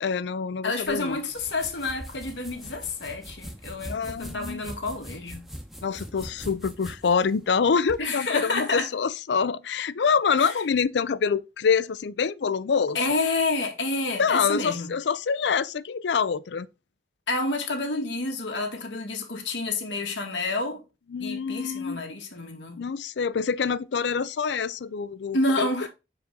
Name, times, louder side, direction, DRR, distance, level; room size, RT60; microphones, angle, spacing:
voice 1, 0.0-1.2 3.9-4.6 5.8-13.0 14.2-16.7 21.1-22.0 22.8-25.9, left 6 dB, 75° left, 0.4 m, -26 dB
voice 2, 0.6-5.5 8.0-8.9 10.4-10.5 12.9-14.9 17.3-20.8 21.2-22.8 25.3-25.9, left 2 dB, 90° left, 1.9 m, -29 dB
sound 1, 0.9-8.0, equal, ahead, 0.9 m, -42 dB
6.8 x 5.0 x 3.6 m
head